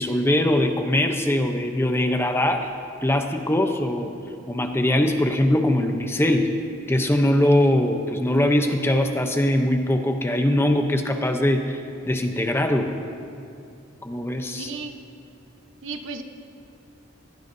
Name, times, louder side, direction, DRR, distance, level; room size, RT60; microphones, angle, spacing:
voice 1, 0.0-2.7 3.0-4.1 4.5-6.5 6.9-12.9 14.0-14.7, left 1 dB, 10° left, 5 dB, 0.7 m, -22 dB
voice 2, 14.5-15.0 15.8-16.2, right 4 dB, 75° right, 6 dB, 1.0 m, -34 dB
19.5 x 17.5 x 2.7 m, 2.5 s
head